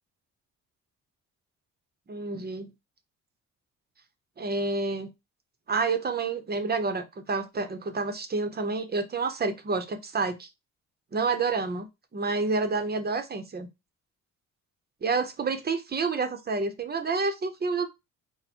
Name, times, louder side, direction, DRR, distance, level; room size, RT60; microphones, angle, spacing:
voice 1, 2.1-2.7 4.4-5.1 5.7-10.5 11.1-13.7 15.0-17.9, right 4 dB, 30° right, 0.8 m, -29 dB
4.2 x 2.1 x 4.2 m
cardioid pair, 90°, 30 cm